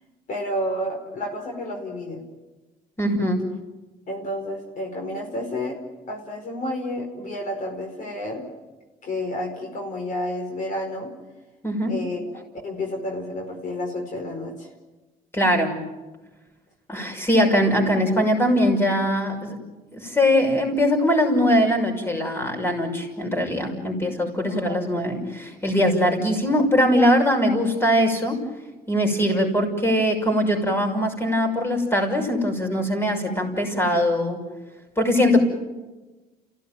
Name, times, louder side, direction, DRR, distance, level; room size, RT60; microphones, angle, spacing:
voice 1, 0.3-2.2 4.1-5.8 6.1-8.4 9.0-11.1 11.9-14.7 24.5-24.8, left 1 dB, 50° left, 3 dB, 4.9 m, -30 dB
voice 2, 3.0-3.4 11.6-11.9 15.3-15.7 16.9-19.5 19.9-28.4 28.9-34.4 35.0-35.4, equal, 15° left, 2 dB, 6.0 m, -21 dB
29.5 x 16.5 x 9.3 m, 1.2 s
cardioid pair, 110°, 17 cm